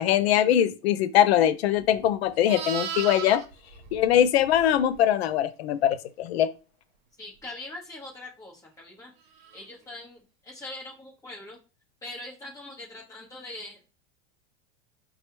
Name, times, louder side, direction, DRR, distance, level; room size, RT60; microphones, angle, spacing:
voice 1, 0.0-3.4 3.9-6.5, left 10 dB, 85° left, 0.5 m, -22 dB
Livestock farm animals working animals, 1.7-5.0 9.4-9.6, right 8 dB, 40° right, 0.5 m, -37 dB
voice 2, 7.2-9.1 9.5-11.6 12.0-13.9, left 2 dB, 10° left, 1.1 m, -42 dB
5.1 x 2.3 x 3.0 m
supercardioid pair, 160°, 31 cm